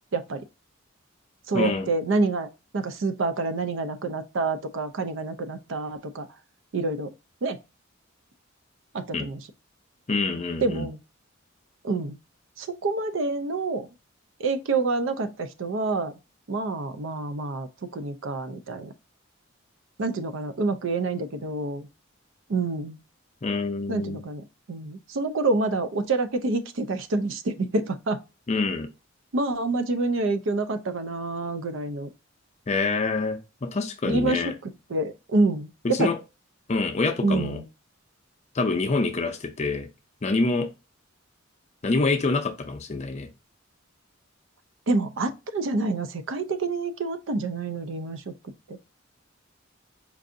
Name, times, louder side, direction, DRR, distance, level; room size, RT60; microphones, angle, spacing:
voice 1, 0.1-0.4 1.5-6.3 6.7-7.1 7.4-7.6 8.9-9.5 10.6-11.0 11.8-12.2 12.6-13.9 14.4-16.1 16.5-18.9 20.0-21.9 22.5-23.0 23.9-28.2 29.3-32.1 34.0-36.1 37.2-37.7 44.9-48.3 48.7-48.8, right 3 dB, 65° right, 0.5 m, -27 dB
voice 2, 1.5-1.9 9.1-9.3 10.1-10.9 23.4-24.2 28.5-28.9 32.7-34.5 35.8-36.2 36.7-37.6 38.5-39.9 40.2-40.7 41.8-43.3, left 3 dB, 35° left, 0.5 m, -26 dB
4.6 x 2.5 x 2.6 m
head